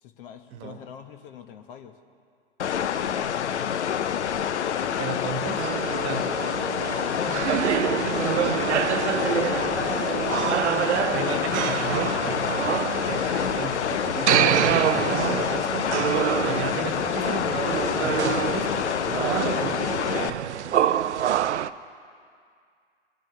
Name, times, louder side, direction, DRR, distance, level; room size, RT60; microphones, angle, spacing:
voice 1, 0.0-2.0 6.3-8.6 9.4-10.8 18.3-18.5 19.2-21.4, left 8 dB, 50° left, 7 dB, 1.1 m, -45 dB
sound 1, 2.6-20.3, left 8 dB, 85° left, 0.6 m, -27 dB
voice 2, 5.0-5.7 6.0-6.3 11.1-12.2 13.1-15.9 16.4-18.8, right 5 dB, 35° right, 6 dB, 1.4 m, -33 dB
sound 2, 5.6-21.7, right 10 dB, 90° right, 0.5 m, -26 dB
21.5 x 10.5 x 3.2 m, 2.2 s
hypercardioid pair, 115°, 34 cm